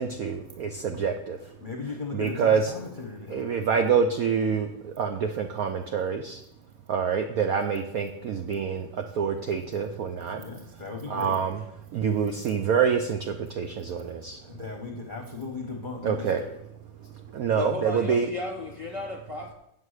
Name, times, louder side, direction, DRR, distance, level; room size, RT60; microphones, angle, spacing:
voice 1, 0.0-1.4 2.1-2.7 3.3-4.7 5.0-6.4 6.9-8.9 9.2-10.4 11.1-11.6 11.9-13.2 13.6-14.4 16.0-16.4 17.3-18.3, right 6 dB, 65° right, 5 dB, 1.0 m, -26 dB
voice 2, 1.6-3.4 10.3-11.4 14.4-16.5, left 4 dB, 35° left, 1 dB, 0.9 m, -37 dB
voice 3, 17.5-19.5, left 2 dB, 15° right, 0 dB, 2.3 m, -34 dB
8.1 x 7.4 x 6.4 m, 0.79 s
omnidirectional pair, 2.0 m